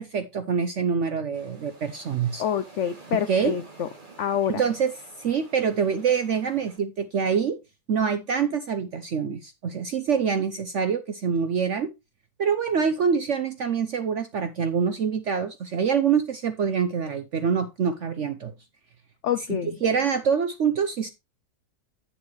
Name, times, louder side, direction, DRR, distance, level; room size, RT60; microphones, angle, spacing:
voice 1, 0.0-2.4 3.3-3.5 4.5-4.9 5.2-7.6 7.9-11.9 12.4-18.5 19.8-21.1, right 6 dB, 60° right, 0.8 m, -25 dB
sound 1, 1.3-6.8, right 3 dB, 30° right, 2.3 m, -49 dB
voice 2, 2.4-3.9 4.2-4.6 19.2-19.8, left 9 dB, 80° left, 0.6 m, -27 dB
8.9 x 7.2 x 3.1 m
omnidirectional pair, 1.9 m